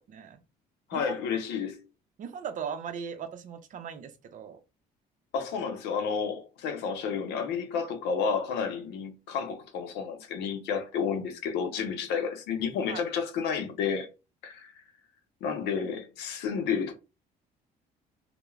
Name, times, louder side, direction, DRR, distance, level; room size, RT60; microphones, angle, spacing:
voice 1, 0.1-0.4 0.9-1.0 2.2-4.6 12.9-13.0, right 7 dB, 50° right, 0.5 m, -38 dB
voice 2, 0.9-1.8 5.3-14.1 14.4-14.8 15.4-16.9, left 6 dB, 85° left, 0.6 m, -31 dB
2.2 x 2.1 x 3.0 m
cardioid pair, 110°, 17 cm